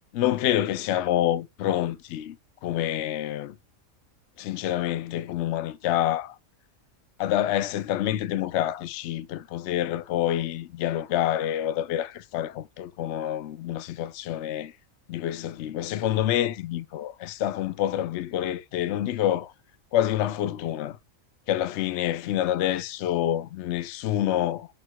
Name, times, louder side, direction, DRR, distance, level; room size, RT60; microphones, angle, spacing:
voice 1, 0.1-3.6 4.4-6.4 7.2-14.7 15.1-19.5 19.9-21.0 21.5-24.7, left 12 dB, 65° left, 0.8 m, -27 dB
4.5 x 4.3 x 2.2 m
omnidirectional pair, 1.5 m